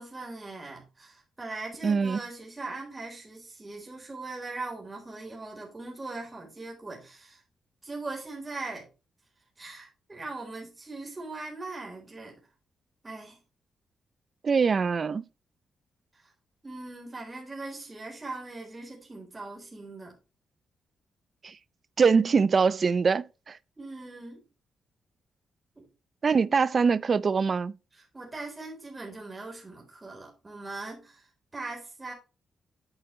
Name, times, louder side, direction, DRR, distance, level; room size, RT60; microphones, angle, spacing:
voice 1, 0.0-7.4 7.8-8.9 9.6-12.3 13.0-13.4 16.1-16.3 16.6-20.1 23.8-24.4 25.8-25.9 27.9-32.1, right 3 dB, 25° right, 3.9 m, -40 dB
voice 2, 1.8-2.2 14.4-15.2 21.4-21.5 22.0-23.6 26.2-27.7, right 5 dB, 45° right, 0.5 m, -23 dB
8.9 x 7.9 x 3.2 m
cardioid pair, 90°, 0 cm